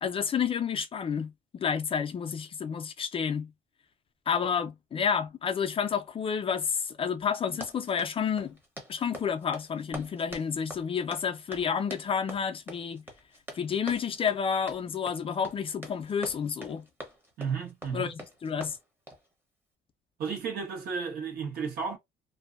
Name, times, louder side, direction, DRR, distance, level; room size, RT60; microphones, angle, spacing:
voice 1, 0.0-3.5 4.3-8.6 8.9-13.0 13.5-16.8 17.9-18.8, left 7 dB, 35° left, 0.4 m, -30 dB
Run, 7.4-19.3, right 1 dB, 10° right, 0.8 m, -45 dB
voice 2, 17.4-18.1 20.2-22.0, right 6 dB, 65° right, 1.1 m, -33 dB
2.6 x 2.1 x 2.4 m
cardioid pair, 110°, 17 cm